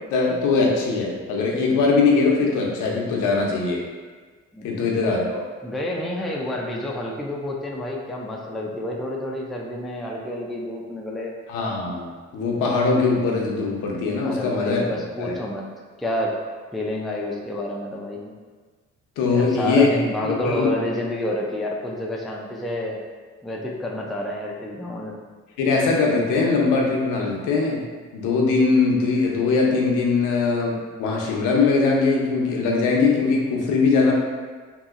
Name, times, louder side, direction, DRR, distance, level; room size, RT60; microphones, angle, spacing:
voice 1, 0.1-3.9 4.6-5.4 11.5-14.8 15.2-15.3 19.2-19.9 20.2-20.7 25.6-27.8 28.1-34.1, left 4 dB, 85° left, -1 dB, 0.6 m, -21 dB
voice 2, 4.5-5.1 5.6-11.3 14.2-15.6 16.0-16.4 16.7-18.3 19.3-23.0 23.4-25.2, left 1 dB, ahead, -2 dB, 0.3 m, -29 dB
2.9 x 2.7 x 2.4 m, 1.4 s
cardioid pair, 90°, 30 cm